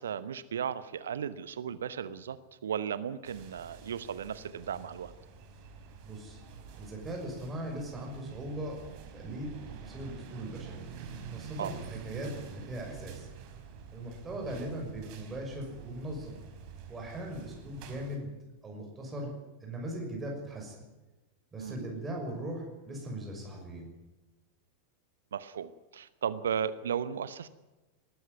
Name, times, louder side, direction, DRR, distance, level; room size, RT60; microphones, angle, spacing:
voice 1, 0.0-2.4 2.6-5.1 11.6-11.7 21.6-21.8 25.3-27.5, right 8 dB, 65° right, 15 dB, 0.9 m, -35 dB
sound 1, 3.2-18.2, right 6 dB, 45° right, 4.5 m, -47 dB
voice 2, 6.0-6.4 6.8-8.8 9.1-10.8 11.2-13.3 13.9-16.4 16.9-18.3 18.6-19.3 19.6-20.8 21.5-23.9, right 1 dB, 15° right, 0 dB, 6.3 m, -39 dB
20.0 x 14.0 x 9.5 m, 1.1 s
figure-of-eight pair, 90°, 0 cm